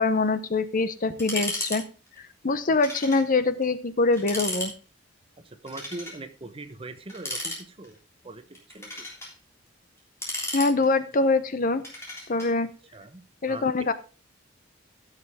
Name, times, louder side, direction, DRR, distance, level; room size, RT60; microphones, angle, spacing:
voice 1, 0.0-1.8 2.4-4.7 10.5-11.8 12.3-12.7 13.4-13.9, left 3 dB, 45° left, 12 dB, 0.7 m, -24 dB
sound 1, 1.2-1.8 2.1-2.2 2.8-3.2 3.6-3.7 4.1-4.7 5.7-6.2 7.1-8.0 8.6-9.3 10.0-11.1 11.8-12.5, left 1 dB, 15° left, 3.4 m, -34 dB
voice 2, 5.4-8.0 8.2-9.1 12.9-13.7, right 2 dB, 30° right, 9 dB, 0.9 m, -41 dB
15.0 x 6.6 x 3.5 m, 0.33 s
head